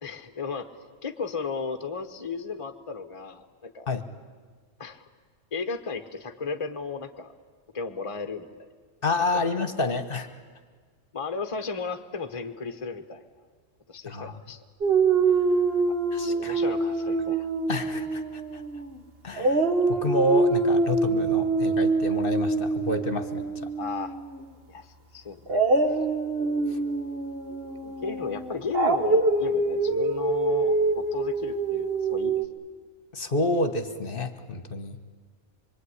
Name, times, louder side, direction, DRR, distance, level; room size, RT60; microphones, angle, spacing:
voice 1, 0.0-0.7 1.0-3.9 4.8-5.1 5.5-7.3 7.7-8.7 9.3-9.5 11.1-13.2 13.9-14.6 15.9-16.0 16.3-17.5 23.8-24.1 24.7-26.0 27.8-32.5, left 5 dB, 25° left, 7 dB, 1.2 m, -35 dB
voice 2, 9.0-10.3 14.1-14.3 16.1-16.6 17.7-18.6 19.2-23.4 26.7-26.8 33.1-35.0, left 2 dB, 45° left, 10 dB, 1.5 m, -29 dB
Dog, 14.8-19.0 19.4-24.4 25.5-32.4, right 3 dB, 50° right, 1.8 m, -25 dB
25.5 x 23.0 x 9.8 m, 1.6 s
omnidirectional pair, 1.3 m